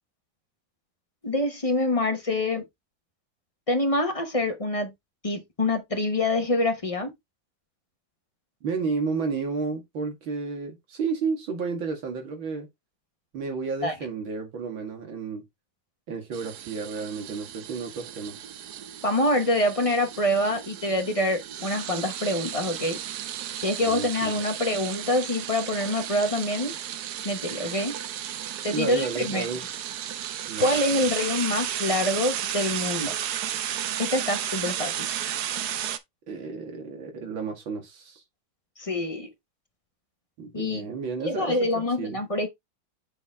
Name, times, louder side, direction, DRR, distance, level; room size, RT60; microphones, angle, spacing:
voice 1, 1.2-2.6 3.7-4.9 5.2-7.1 13.8-13.9 19.0-23.0 23.6-26.7 27.2-27.9 28.6-29.5 30.6-33.1 34.0-35.1 38.8-39.3 40.5-40.8 41.2-42.5, left 1 dB, 20° left, 1.1 m, -26 dB
voice 2, 8.6-12.7 13.3-15.4 16.1-18.5 23.8-24.4 28.7-29.6 30.5-30.8 36.3-38.2 40.4-41.6 42.0-42.2, right 4 dB, 90° right, 2.7 m, -32 dB
sound 1, 16.3-36.0, right 10 dB, 65° right, 1.1 m, -33 dB
7.0 x 4.3 x 3.6 m
omnidirectional pair, 2.1 m